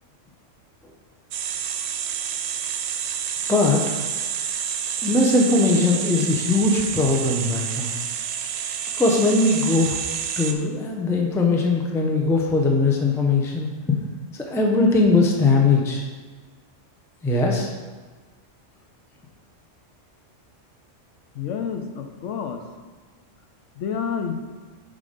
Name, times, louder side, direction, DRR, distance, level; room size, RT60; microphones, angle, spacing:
sound 1, 1.3-10.5, right 8 dB, 80° right, 1.0 m, -29 dB
voice 1, 3.5-3.8 5.0-7.9 9.0-10.0 10.4-14.0 14.4-16.0 17.2-17.7, left 3 dB, 5° left, 0 dB, 0.4 m, -20 dB
voice 2, 21.4-22.6 23.8-24.3, left 7 dB, 70° left, 6 dB, 0.9 m, -29 dB
7.3 x 3.8 x 5.1 m, 1.4 s
omnidirectional pair, 1.3 m